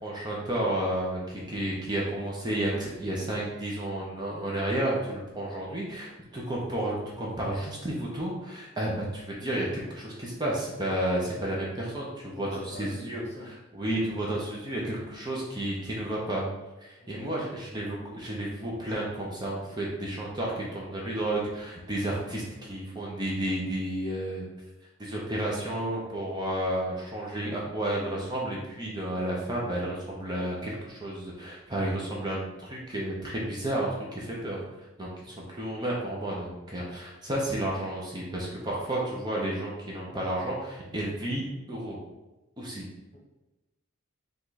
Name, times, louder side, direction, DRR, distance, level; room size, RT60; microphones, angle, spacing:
voice 1, 0.0-16.5 16.8-24.4 25.0-34.6 35.0-42.0 42.6-42.9, right 1 dB, 20° right, -4 dB, 0.7 m, -32 dB
voice 2, 12.2-13.5 17.0-17.3 43.1-43.2, left 1 dB, 30° left, -3 dB, 1.0 m, -44 dB
5.1 x 2.5 x 4.1 m, 1.0 s
head